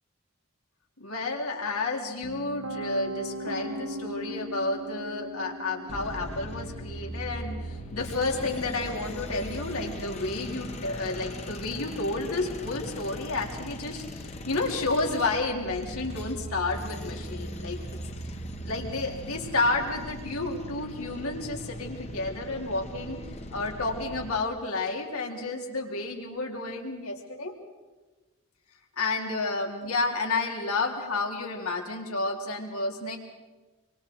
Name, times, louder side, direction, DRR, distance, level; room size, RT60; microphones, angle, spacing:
voice 1, 1.0-18.0 18.6-23.2 23.5-27.5 29.0-33.2, left 3 dB, 85° left, 0 dB, 3.9 m, -31 dB
Piano, 2.2-14.1, right 1 dB, 75° right, 1.3 m, -42 dB
sound 1, 5.9-24.4, equal, 30° left, 1.3 m, -39 dB
27.0 x 25.5 x 4.8 m, 1.2 s
head